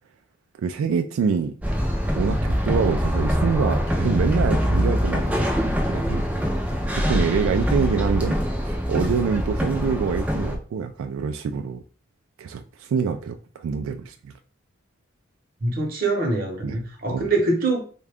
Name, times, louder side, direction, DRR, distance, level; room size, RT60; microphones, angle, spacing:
voice 1, 0.6-1.5 2.2-6.2 7.1-11.8 12.4-14.3 16.6-16.8 17.1-17.3, right 6 dB, 90° right, 0.3 m, -26 dB
sound 1, 1.6-10.6, equal, 5° right, 0.5 m, -23 dB
voice 2, 15.6-17.9, right 2 dB, 45° right, 0.9 m, -24 dB
3.6 x 2.2 x 3.4 m
head